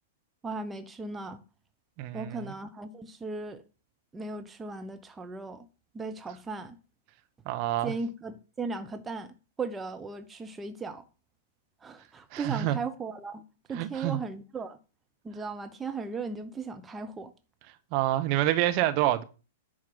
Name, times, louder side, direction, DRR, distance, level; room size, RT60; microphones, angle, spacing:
voice 1, 0.4-1.4 2.1-3.6 4.1-5.7 5.9-6.8 7.8-9.3 9.6-11.0 11.8-13.4 13.7-14.8 15.2-17.3, right 4 dB, 15° right, 0.9 m, -37 dB
voice 2, 2.0-2.5 7.5-7.9 12.3-12.8 13.7-14.2 17.9-19.2, right 14 dB, 40° right, 1.1 m, -27 dB
10.5 x 4.5 x 7.7 m
figure-of-eight pair, 105°, 0 cm